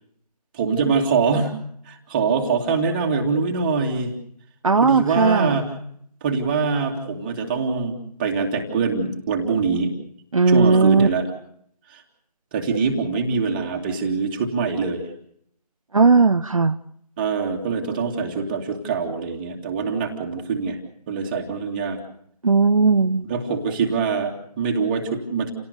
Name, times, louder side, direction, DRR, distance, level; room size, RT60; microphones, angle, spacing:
voice 1, 0.5-1.6 1.9-4.1 4.8-5.7 6.2-9.9 10.5-11.2 12.5-15.0 17.2-20.8 21.1-22.0 23.3-25.5, right 5 dB, 15° right, 1 dB, 2.3 m, -24 dB
voice 2, 4.6-5.6 10.3-11.1 15.9-16.8 22.4-23.3, right 4 dB, 55° right, 8 dB, 0.9 m, -17 dB
29.5 x 18.0 x 6.9 m, 0.69 s
figure-of-eight pair, 160°, 21 cm